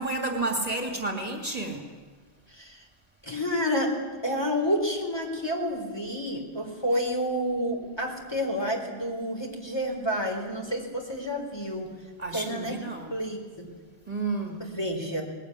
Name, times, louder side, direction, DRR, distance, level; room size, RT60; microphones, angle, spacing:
voice 1, 0.0-1.8 12.2-13.1 14.1-14.6, right 2 dB, 35° right, 3 dB, 2.9 m, -31 dB
voice 2, 3.2-11.9 12.3-12.8 13.1-13.7 14.6-15.2, equal, 20° left, 1 dB, 4.2 m, -29 dB
20.5 x 20.0 x 9.9 m, 1.5 s
omnidirectional pair, 1.2 m